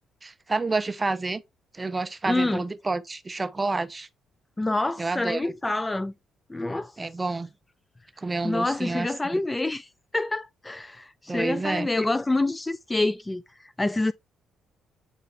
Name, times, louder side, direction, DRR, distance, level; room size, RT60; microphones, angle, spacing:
voice 1, 0.2-1.4 1.7-4.1 5.0-5.5 7.0-7.5 8.2-9.4 11.3-11.9, right 3 dB, 20° right, 0.7 m, -29 dB
voice 2, 2.3-2.6 4.6-6.1 6.5-6.9 8.4-14.1, left 2 dB, 15° left, 0.3 m, -27 dB
8.0 x 4.1 x 3.4 m
cardioid pair, 90°, 0 cm